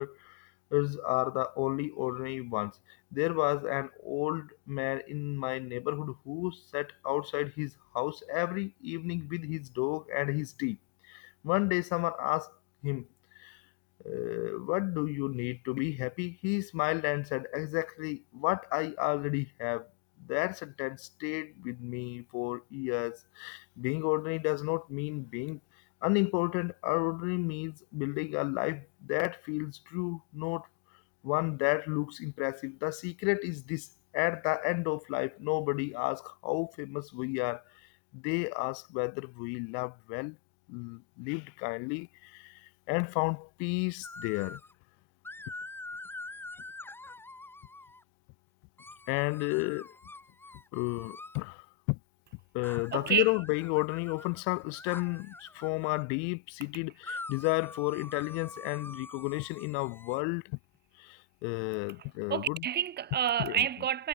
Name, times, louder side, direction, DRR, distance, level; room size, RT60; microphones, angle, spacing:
voice 1, 0.0-2.8 3.1-10.8 11.1-12.6 12.8-13.1 13.4-13.6 14.0-19.9 20.2-25.6 26.0-30.7 31.2-33.9 34.1-37.9 38.1-40.4 40.7-44.6 49.1-49.9 50.7-52.0 52.5-60.6 61.0-62.6 63.4-63.7, left 35 dB, 30° left, 0.4 m, -32 dB
sound 1, 44.0-44.7 45.2-48.0 48.8-51.4 52.6-56.1 57.0-60.2, left 2 dB, 5° left, 0.9 m, -46 dB
voice 2, 52.9-53.3 62.3-64.1, right 9 dB, 25° right, 1.5 m, -29 dB
hypercardioid pair, 95°, 43 cm